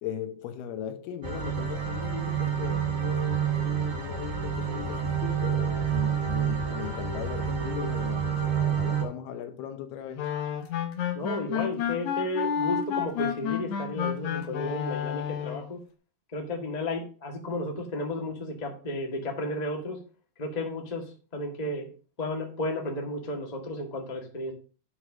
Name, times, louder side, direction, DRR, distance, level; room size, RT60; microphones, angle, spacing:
voice 1, 0.0-10.2, left 10 dB, 80° left, 3.0 m, -38 dB
sound 1, 1.2-9.0, right 7 dB, 50° right, 0.9 m, -28 dB
sound 2, 10.2-15.7, left 8 dB, 65° left, 2.1 m, -30 dB
voice 2, 11.1-15.8 16.3-20.0 20.4-21.9 22.2-24.5, left 1 dB, 30° left, 0.7 m, -33 dB
10.0 x 4.7 x 6.1 m
omnidirectional pair, 4.4 m